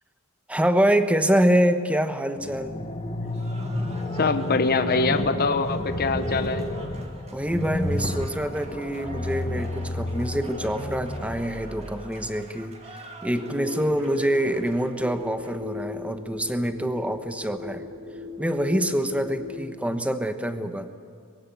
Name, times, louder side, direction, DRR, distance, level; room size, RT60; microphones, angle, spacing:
voice 1, 0.5-2.8 7.3-17.8 18.4-20.9, right 1 dB, 5° right, 9 dB, 1.1 m, -25 dB
sound 1, 2.4-12.3, left 1 dB, 30° left, 1.6 m, -31 dB
Cheering / Applause, 3.2-15.8, right 3 dB, 30° right, 2.3 m, -47 dB
voice 2, 4.1-6.6, left 4 dB, 45° left, 10 dB, 0.9 m, -24 dB
sound 2, 13.2-19.6, left 4 dB, 45° right, 2.3 m, -38 dB
22.0 x 16.0 x 9.4 m, 2.4 s
head